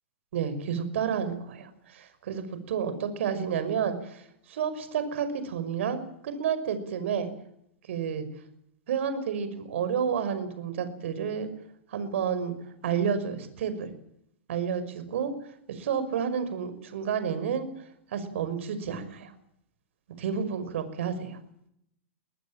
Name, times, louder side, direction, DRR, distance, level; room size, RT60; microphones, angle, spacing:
voice 1, 0.3-7.3 7.9-8.3 8.9-11.5 11.9-12.5 12.8-13.9 14.5-15.3 15.7-17.7 18.1-19.3 20.2-21.4, right 7 dB, 70° right, 11 dB, 5.7 m, -30 dB
23.0 x 19.5 x 8.9 m, 0.74 s
hypercardioid pair, 125°, 7 cm